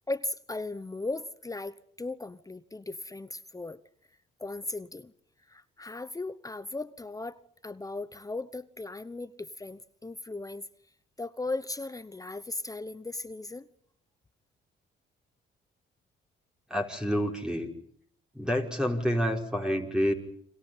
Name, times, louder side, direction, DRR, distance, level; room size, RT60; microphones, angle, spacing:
voice 1, 0.1-3.8 4.4-5.1 5.5-10.7 11.2-13.7, left 2 dB, 15° left, 15 dB, 1.0 m, -37 dB
voice 2, 16.7-17.7 18.3-20.1, equal, 5° right, 2 dB, 5.1 m, -28 dB
29.5 x 26.0 x 5.7 m, 0.65 s
cardioid pair, 90°, 20 cm